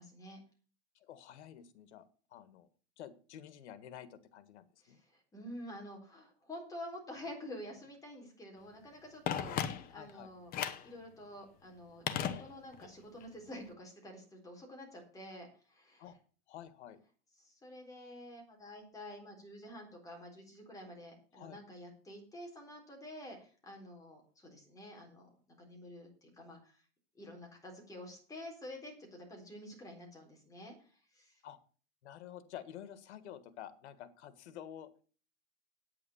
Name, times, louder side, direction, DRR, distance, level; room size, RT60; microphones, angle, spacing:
voice 1, 1.0-2.1 2.3-2.7 3.0-5.0 9.3-9.4 9.9-10.3 16.0-16.2 16.5-17.0 21.3-21.6 31.4-31.6 32.0-34.9, left 10 dB, 85° left, 14 dB, 1.7 m, -50 dB
voice 2, 4.8-9.6 9.9-10.5 10.8-16.0 17.4-25.3 25.6-26.8 27.1-31.4, left 1 dB, 10° left, 0 dB, 3.9 m, -49 dB
Telephone, 9.3-10.1 10.5-10.9 12.1-12.9 13.2-13.3, left 9 dB, 25° left, 0.9 m, -36 dB
9.3 x 8.6 x 7.1 m, 0.40 s
supercardioid pair, 160°, 33 cm